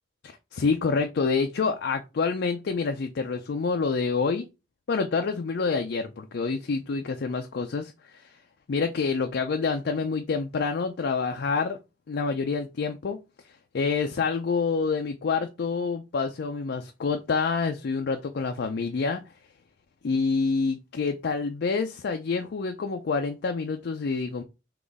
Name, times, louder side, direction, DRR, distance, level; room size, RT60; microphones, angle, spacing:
voice 1, 0.2-4.5 4.9-8.2 8.7-11.8 12.1-13.2 13.7-19.2 20.0-24.4, left 4 dB, 60° left, 0.4 m, -27 dB
3.9 x 3.0 x 3.5 m
head